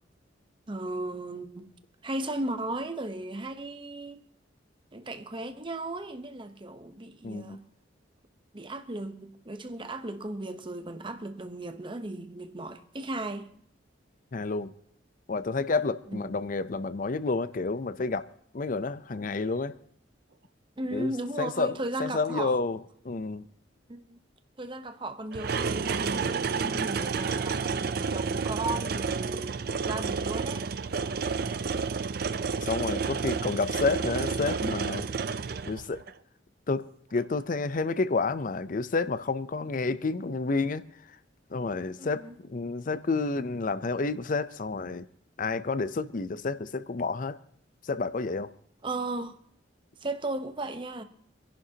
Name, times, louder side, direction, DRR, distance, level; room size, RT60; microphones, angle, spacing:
voice 1, 0.7-1.7 2.0-4.2 4.9-7.6 8.5-13.5 16.1-16.3 20.8-22.6 23.9-24.2 24.6-30.7 42.0-42.4 48.8-49.4 50.0-51.0, right 2 dB, 25° right, 0.9 m, -36 dB
voice 2, 7.2-7.6 14.3-14.7 15.3-18.3 18.5-19.8 20.9-21.1 21.4-22.8 23.0-23.4 32.6-35.1 35.7-36.0 36.7-40.8 41.5-45.1 45.4-47.4 47.8-48.5, left 3 dB, 45° left, 0.6 m, -30 dB
sound 1, 25.3-36.1 37.2-37.3, right 5 dB, 55° right, 0.5 m, -30 dB
25.5 x 11.0 x 2.8 m
head